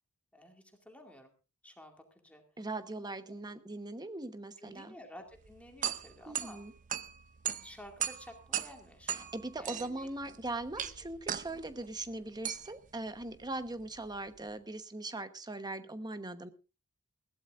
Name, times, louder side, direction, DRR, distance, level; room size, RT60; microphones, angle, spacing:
voice 1, 0.3-1.3 1.6-2.4 4.6-6.6 7.6-10.1 10.8-10.9, left 1 dB, 5° left, 3 dB, 2.3 m, -52 dB
voice 2, 2.6-5.0 6.3-6.7 9.1-16.5, right 2 dB, 20° right, 10 dB, 1.1 m, -40 dB
sound 1, 5.3-14.5, right 10 dB, 35° right, 0.6 m, -40 dB
20.5 x 16.0 x 2.6 m, 0.31 s
head